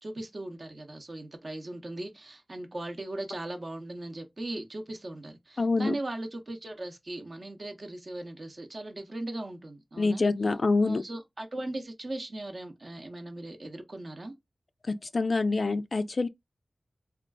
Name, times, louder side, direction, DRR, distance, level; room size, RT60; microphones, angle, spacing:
voice 1, 0.0-10.2 10.8-14.3, right 1 dB, 55° right, 0.7 m, -38 dB
voice 2, 5.6-6.0 10.0-11.0 14.9-16.3, left 3 dB, 60° left, 0.3 m, -26 dB
3.6 x 2.3 x 2.2 m
wide cardioid pair, 75°, 0 cm